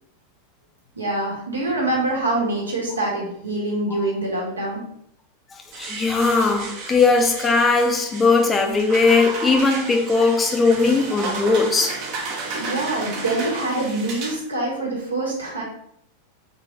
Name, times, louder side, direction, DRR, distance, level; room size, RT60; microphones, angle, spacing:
voice 1, 0.9-4.8 12.6-15.6, right 2 dB, 75° right, 1.4 m, -25 dB
sound 1, 5.7-14.4, right 3 dB, 45° right, 0.9 m, -32 dB
voice 2, 5.8-12.0, left 4 dB, 15° left, 0.7 m, -19 dB
3.8 x 3.2 x 3.6 m
figure-of-eight pair, 90°, 0 cm